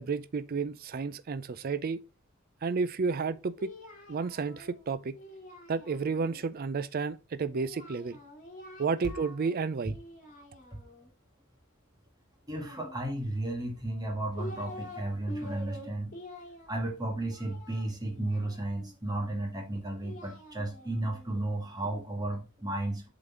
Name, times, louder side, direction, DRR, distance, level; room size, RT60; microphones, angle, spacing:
voice 1, 0.0-2.0 2.6-3.7 4.1-5.2 5.7-8.2 8.8-9.9, right 4 dB, 45° right, 0.4 m, -31 dB
Singing, 3.1-6.4 7.5-9.6 9.9-11.1 12.5-13.4 14.0-15.0 15.3-18.9 19.7-22.0, left 1 dB, 40° left, 2.2 m, -47 dB
voice 2, 12.5-16.1 16.7-23.1, right 1 dB, 20° right, 1.7 m, -34 dB
7.8 x 3.9 x 3.6 m
head